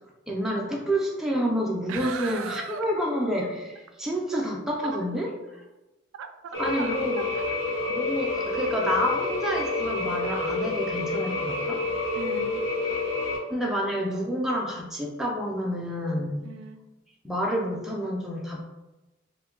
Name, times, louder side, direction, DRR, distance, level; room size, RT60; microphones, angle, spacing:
voice 1, 0.3-5.6 6.6-7.2 7.9-11.8 13.5-16.5 17.2-18.7, equal, ahead, -2 dB, 0.4 m, -29 dB
voice 2, 1.9-2.8 4.8-5.0 6.2-7.4 12.1-12.6 16.4-16.9, right 6 dB, 80° right, 6 dB, 0.3 m, -37 dB
sound 1, 6.5-13.4, left 3 dB, 75° left, 1.0 m, -28 dB
2.6 x 2.2 x 3.7 m, 1.0 s
head